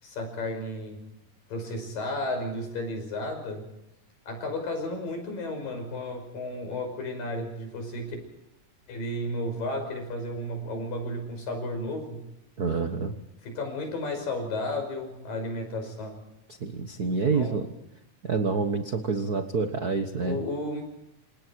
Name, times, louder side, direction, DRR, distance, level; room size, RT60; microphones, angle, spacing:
voice 1, 0.0-1.0 1.5-3.7 4.3-8.2 8.9-12.2 13.4-16.1 17.3-17.6 20.2-20.8, left 1 dB, 80° left, 5 dB, 7.2 m, -33 dB
voice 2, 12.6-13.2 16.6-17.7 18.2-20.4, right 4 dB, 75° right, 7 dB, 0.8 m, -27 dB
28.0 x 27.5 x 4.7 m, 0.85 s
omnidirectional pair, 3.9 m